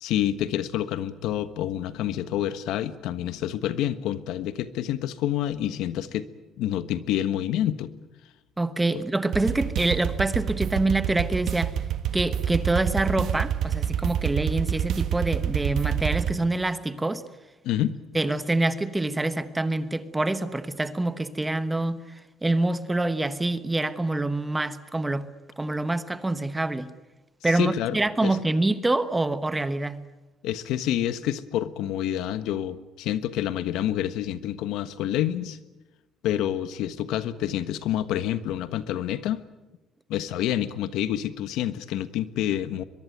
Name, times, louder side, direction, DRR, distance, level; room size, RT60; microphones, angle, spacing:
voice 1, 0.0-6.3 6.6-7.9 17.6-17.9 27.4-28.4 30.4-35.6 36.2-39.4 40.1-42.8, left 11 dB, 85° left, 12 dB, 1.4 m, -28 dB
voice 2, 8.6-11.8 12.1-17.2 18.1-22.0 22.4-25.3 25.6-26.9 27.4-30.0, right 2 dB, 10° right, 12 dB, 1.2 m, -26 dB
sound 1, 9.3-16.3, right 9 dB, 60° right, 1.5 m, -27 dB
23.0 x 23.0 x 9.4 m, 1.1 s
cardioid pair, 145°, 0 cm